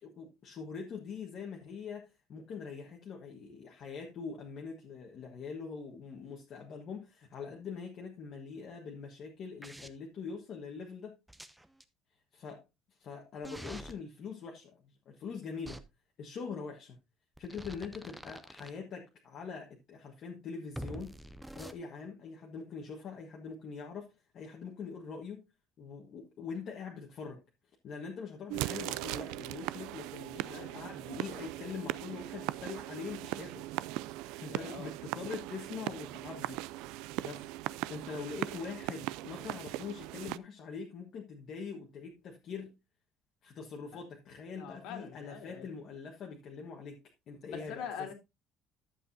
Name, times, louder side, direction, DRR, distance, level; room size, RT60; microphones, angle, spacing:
voice 1, 0.0-11.2 12.3-12.6 13.0-15.8 16.2-17.0 17.4-21.2 21.5-25.4 25.8-27.4 27.8-33.8 34.2-36.6 37.2-37.5 37.9-42.7 43.4-48.1, left 5 dB, 40° left, 1.4 m, -43 dB
sound 1, 9.6-9.9 11.3-11.8 13.4-13.9 15.6-15.8 17.4-18.7 20.7-21.7, right 1 dB, 5° right, 0.5 m, -45 dB
sound 2, 28.5-40.4, right 17 dB, 90° right, 0.4 m, -39 dB
voice 2, 30.3-30.7 34.4-34.9 43.9-44.0 44.6-45.7 47.5-48.1, left 7 dB, 65° left, 2.4 m, -44 dB
11.5 x 7.8 x 2.7 m
cardioid pair, 175°, 0 cm